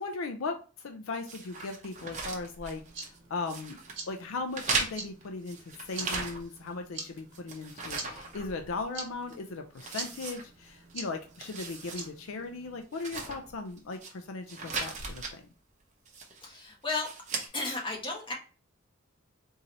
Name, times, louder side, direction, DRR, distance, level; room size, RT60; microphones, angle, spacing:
voice 1, 0.0-3.8 4.1-5.6 5.8-15.4, left 3 dB, 70° left, 5 dB, 0.5 m, -38 dB
sound 1, 1.3-3.2 3.5-4.0 4.5-6.7 7.0-8.9 9.3-9.4 9.8-10.9 11.3-12.1 12.4-12.5 12.9-14.1 14.5-15.3 16.1-16.5 16.9-17.5, right 4 dB, 35° right, 0.8 m, -37 dB
sound 2, 2.6-12.8, right 4 dB, 65° right, 1.1 m, -46 dB
voice 2, 16.4-17.1 17.5-18.3, left 3 dB, 25° left, 0 dB, 1.1 m, -33 dB
3.8 x 2.7 x 3.0 m, 0.36 s
head